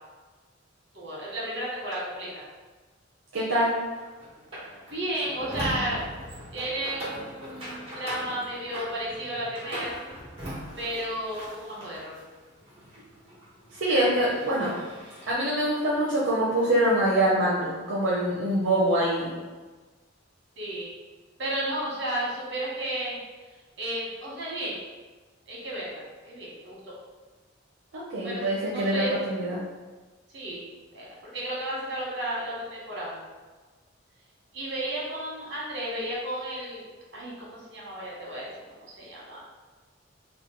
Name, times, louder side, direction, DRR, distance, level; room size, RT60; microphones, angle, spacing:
voice 1, 0.9-2.3 4.9-6.0 6.5-9.9 10.8-12.1 20.6-20.9 21.4-23.2 23.8-24.8 25.5-26.9 28.2-29.1 30.3-30.6 30.9-31.1 31.3-33.2 34.5-36.9 37.1-38.5 38.9-39.4, right 1 dB, 60° right, -5 dB, 1.2 m, -33 dB
voice 2, 3.3-3.7 13.7-14.7 15.3-19.3 27.9-29.6, right 1 dB, 80° right, -7 dB, 0.6 m, -24 dB
sound 1, 3.5-12.2 12.6-15.3, equal, 30° right, 1.2 m, -40 dB
3.0 x 2.2 x 3.8 m, 1.3 s
head